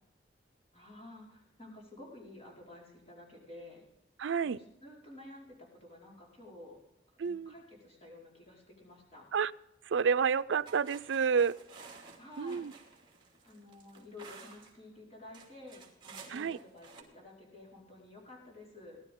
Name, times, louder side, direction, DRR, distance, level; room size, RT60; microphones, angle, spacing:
voice 1, 0.7-3.8 4.4-6.8 7.2-9.3 12.2-12.7 12.9-13.0 13.4-19.0, left 2 dB, 35° left, -3 dB, 4.7 m, -52 dB
voice 2, 4.2-4.6 7.2-7.5 9.3-9.5 9.9-11.6 12.4-12.7 16.3-16.6, right 6 dB, 80° right, 15 dB, 0.4 m, -29 dB
sound 1, 10.7-14.8 15.3-17.0, right 5 dB, 25° right, 2.6 m, -53 dB
19.0 x 12.0 x 3.7 m, 0.84 s
head